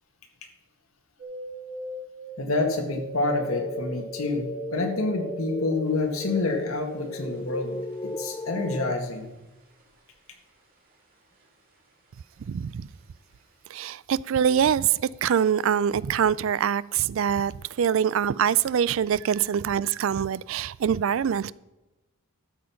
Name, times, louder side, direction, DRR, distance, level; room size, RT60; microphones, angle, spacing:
sound 1, 1.2-10.6 10.9-11.7 12.1-13.0 13.4-13.5, equal, 40° right, 2.4 m, -41 dB
voice 1, 2.4-7.8 8.0-9.3, left 2 dB, 75° left, 1.9 m, -28 dB
sound 2, 3.3-8.9, left 1 dB, 15° left, 0.4 m, -35 dB
voice 2, 12.5-12.9 13.7-17.5 17.8-21.5, right 8 dB, 60° right, 0.3 m, -24 dB
12.5 x 7.7 x 5.8 m
head